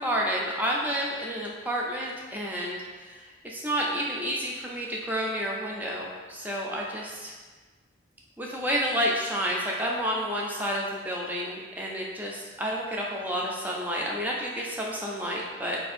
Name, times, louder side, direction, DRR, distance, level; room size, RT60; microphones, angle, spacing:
voice 1, 0.0-7.3 8.4-15.8, equal, 10° right, -3 dB, 0.4 m, -30 dB
3.5 x 2.5 x 4.2 m, 1.4 s
head